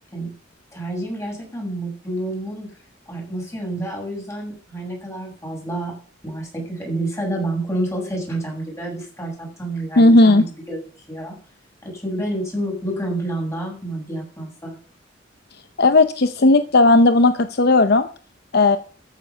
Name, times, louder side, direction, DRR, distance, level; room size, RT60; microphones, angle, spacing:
voice 1, 0.7-2.7 3.1-5.9 6.2-10.8 11.1-11.4 11.8-14.8, right 1 dB, 15° left, -1 dB, 7.4 m, -29 dB
voice 2, 10.0-10.4 15.8-18.1 18.5-18.8, left 2 dB, 55° left, 10 dB, 0.7 m, -14 dB
14.5 x 9.4 x 6.1 m, 0.43 s
head